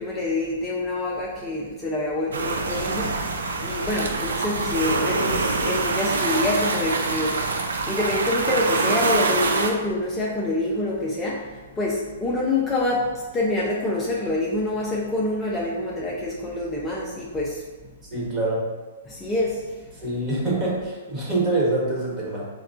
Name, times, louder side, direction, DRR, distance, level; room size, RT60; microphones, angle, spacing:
voice 1, 0.0-3.2 3.6-7.5 7.9-17.6 19.1-19.7, left 1 dB, 15° left, -5 dB, 0.4 m, -26 dB
sound 1, 2.3-9.7, right 3 dB, 85° right, 0.4 m, -25 dB
voice 2, 18.1-18.6 20.0-22.4, right 2 dB, 25° right, -5 dB, 1.2 m, -25 dB
4.5 x 2.2 x 2.5 m, 1.2 s
hypercardioid pair, 135°, 0 cm